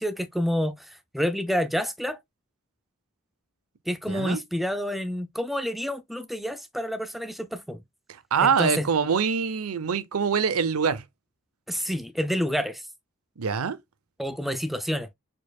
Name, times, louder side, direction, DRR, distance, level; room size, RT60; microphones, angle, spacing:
voice 1, 0.0-2.2 3.9-7.8 8.4-8.9 11.7-12.9 14.2-15.1, equal, ahead, 0.3 m, -28 dB
voice 2, 4.1-4.4 8.3-11.0 13.4-13.8, right 6 dB, 85° right, 0.6 m, -24 dB
4.5 x 4.4 x 2.2 m
head